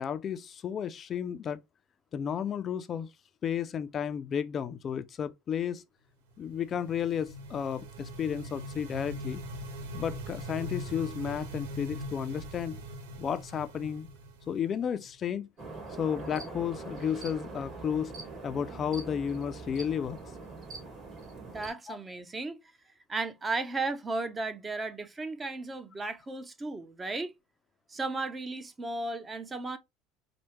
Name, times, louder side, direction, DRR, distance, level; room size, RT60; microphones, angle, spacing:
voice 1, 0.0-1.6 2.1-3.1 3.4-5.8 6.4-9.4 9.9-12.8 13.2-14.1 14.5-15.5 16.0-18.2 18.4-20.2 21.9-22.0, left 8 dB, 40° left, 0.3 m, -33 dB
sound 1, 6.4-15.1, equal, 85° right, 0.6 m, -41 dB
sound 2, 15.6-21.7, right 3 dB, 40° right, 2.6 m, -42 dB
voice 2, 21.4-22.6 23.1-27.3 27.9-29.8, right 3 dB, 20° right, 0.6 m, -35 dB
4.4 x 2.1 x 3.0 m
supercardioid pair, 100°, 0 cm